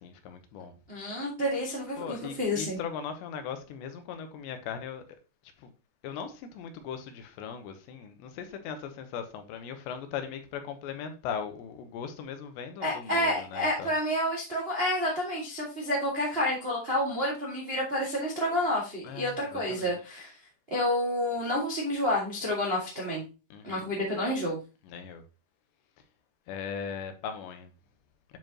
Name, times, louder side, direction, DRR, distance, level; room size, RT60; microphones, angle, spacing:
voice 1, 0.0-0.7 2.0-5.0 6.0-13.9 19.0-19.9 23.5-23.8 24.9-25.2 26.5-27.7, left 7 dB, 80° left, 3.2 m, -39 dB
voice 2, 0.9-2.8 12.8-20.3 20.7-23.2 23.6-24.6, left 1 dB, 55° right, 0.6 m, -29 dB
9.4 x 5.1 x 2.9 m
omnidirectional pair, 5.0 m